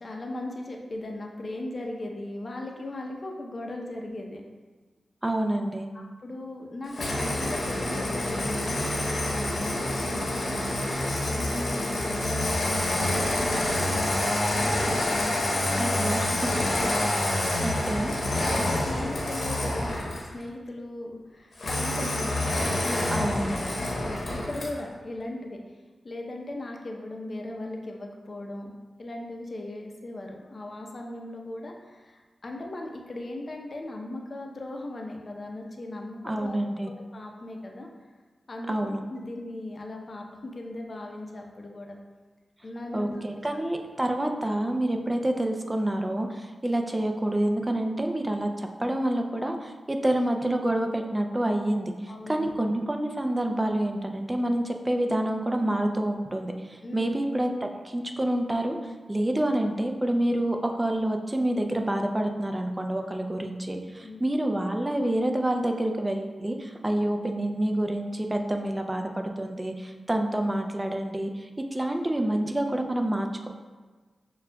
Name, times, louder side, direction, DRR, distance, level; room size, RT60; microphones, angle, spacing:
voice 1, 0.0-4.4 5.9-16.0 18.5-20.0 20.3-23.3 23.8-25.6 26.0-28.7 29.0-36.6 36.8-37.9 38.5-42.0 42.6-43.2 52.1-52.5 56.8-57.1 64.0-64.2, left 2 dB, 50° left, 1 dB, 0.6 m, -38 dB
voice 2, 5.2-5.9 15.7-16.9 17.6-18.2 23.1-23.7 36.2-36.9 38.7-39.0 42.9-73.5, right 1 dB, 20° right, 4 dB, 0.4 m, -28 dB
Engine starting, 6.9-20.3 21.6-24.8, left 1 dB, 65° left, 0.9 m, -27 dB
6.5 x 2.3 x 2.2 m, 1.3 s
cardioid pair, 55°, 0 cm